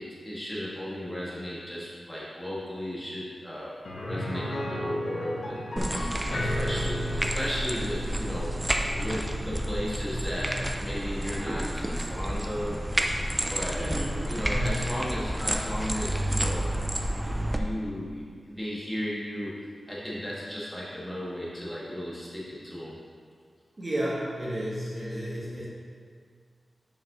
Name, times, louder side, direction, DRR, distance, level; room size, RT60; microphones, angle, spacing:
voice 1, 0.0-3.7 4.0-8.6 8.9-12.8 13.4-13.9 14.3-16.7 17.2-19.6 19.9-22.9, equal, 10° left, -8 dB, 1.8 m, -35 dB
sound 1, 3.8-13.6 13.9-14.0 16.5-16.6, equal, 75° left, 1.1 m, -36 dB
sound 2, 5.8-17.6, right 1 dB, 15° right, 0.5 m, -30 dB
voice 2, 13.8-15.1 23.8-25.7, equal, 30° right, -7 dB, 1.3 m, -32 dB
8.8 x 5.4 x 3.0 m, 2.1 s
wide cardioid pair, 110°, 0 cm